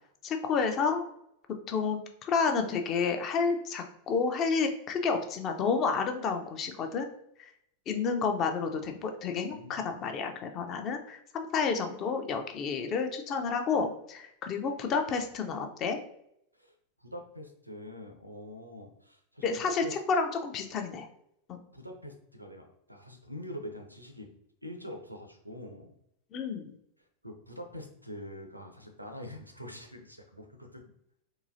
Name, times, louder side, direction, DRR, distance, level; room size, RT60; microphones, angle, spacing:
voice 1, 0.2-1.0 1.7-7.1 7.9-16.0 19.4-21.1 21.5-21.6 26.3-26.7, left 5 dB, 35° left, 6 dB, 0.5 m, -30 dB
voice 2, 9.5-9.9 16.6-16.7 17.0-19.9 21.7-24.3 24.6-25.9 27.2-30.8, left 1 dB, 90° right, 4 dB, 0.5 m, -44 dB
3.8 x 2.6 x 2.6 m, 0.74 s
figure-of-eight pair, 90°, 0 cm